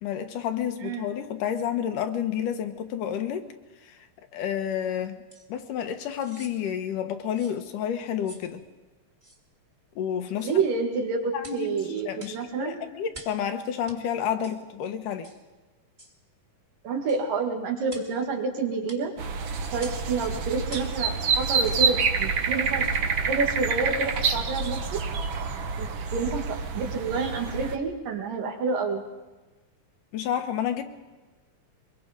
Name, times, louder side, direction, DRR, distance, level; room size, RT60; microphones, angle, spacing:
voice 1, 0.0-3.5 3.8-4.0 4.3-5.2 5.5-8.6 10.0-10.5 11.3-11.8 12.1-15.3 30.1-30.8, left 9 dB, 75° left, 7 dB, 2.7 m, -30 dB
sound 1, 5.3-5.5 6.1-6.6 7.3-7.6 8.2-8.5 9.2-9.4 10.3-10.6 11.4-11.6 12.2-12.4 13.1-13.4 13.9-14.0 14.4-14.6 15.2-15.4 16.0-16.2 17.1-17.2 17.9-18.1 18.9-19.0 19.8-20.0 20.7-21.0 21.7-21.9 22.3-22.4, right 2 dB, 15° right, 1.8 m, -46 dB
voice 2, 10.4-12.8 14.4-14.5 16.8-19.1 19.7-22.9 23.2-25.0 25.8-29.0, right 4 dB, 80° right, 3 dB, 3.7 m, -29 dB
sound 2, 19.2-27.8, right 5 dB, 65° right, 1.3 m, -27 dB
23.0 x 22.0 x 5.1 m, 1.2 s
omnidirectional pair, 3.8 m